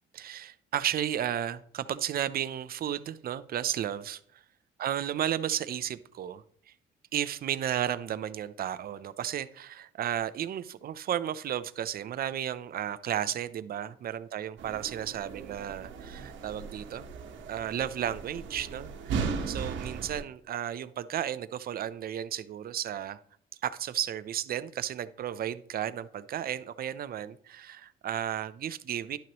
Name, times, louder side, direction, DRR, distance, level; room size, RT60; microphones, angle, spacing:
voice 1, 0.1-4.2 4.8-6.7 7.1-17.0 17.5-23.2 23.6-29.2, right 10 dB, 50° right, 14 dB, 0.6 m, -33 dB
sound 1, 14.6-20.2, right 5 dB, 80° right, 1.2 m, -37 dB
11.0 x 6.0 x 3.0 m, 0.63 s
cardioid pair, 100°, 19 cm